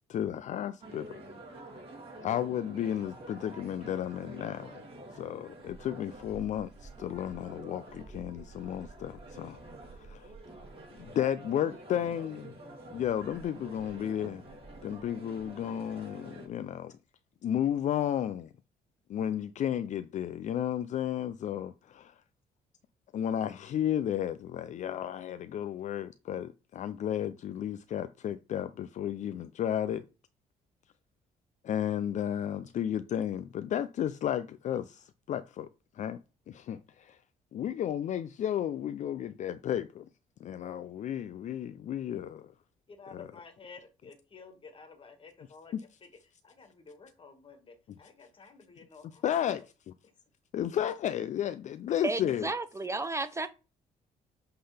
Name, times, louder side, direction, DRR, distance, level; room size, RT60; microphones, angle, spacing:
voice 1, 0.1-1.2 2.2-4.8 5.1-9.6 10.0-10.3 11.0-12.5 12.9-14.5 14.8-16.9 17.4-18.5 19.1-22.2 23.1-30.0 31.6-35.7 35.9-36.2 36.5-37.2 37.5-40.1 40.4-42.5 43.1-43.3 45.7-45.8 49.2-49.6 50.5-52.5, left 10 dB, 55° left, 0.4 m, -33 dB
sound 1, 0.8-16.5, right 2 dB, 40° right, 3.1 m, -48 dB
voice 2, 42.9-46.1 46.4-49.2, left 4 dB, 35° left, 1.9 m, -52 dB
voice 3, 52.0-53.5, right 3 dB, 20° right, 0.5 m, -32 dB
7.8 x 3.9 x 3.4 m
cardioid pair, 95°, 15 cm